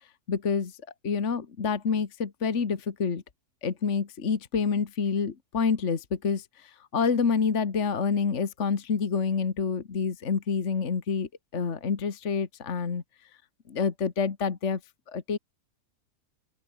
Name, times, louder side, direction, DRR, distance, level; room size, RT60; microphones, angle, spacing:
voice 1, 0.3-0.7 1.0-3.2 3.6-13.0 13.7-14.8 15.1-15.4, left 5 dB, 45° left, 1.8 m, -28 dB
open air
omnidirectional pair, 1.8 m